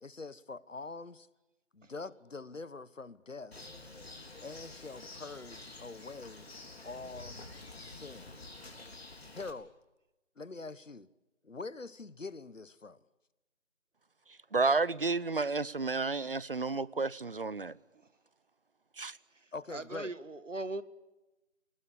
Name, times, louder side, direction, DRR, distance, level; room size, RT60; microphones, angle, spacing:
voice 1, 0.0-1.3 1.7-3.6 4.4-6.5 6.8-7.4 7.8-8.3 9.3-9.7 10.4-11.1 11.4-13.0 16.9-17.1 19.5-20.1, left 3 dB, 85° left, 1.4 m, -44 dB
Bird, 3.5-9.5, left 2 dB, 55° left, 4.1 m, -49 dB
voice 2, 14.5-17.8 19.0-19.1, right 3 dB, 45° right, 0.8 m, -31 dB
voice 3, 19.3-20.8, right 2 dB, 80° right, 1.7 m, -40 dB
26.5 x 19.0 x 8.5 m
figure-of-eight pair, 165°, 37 cm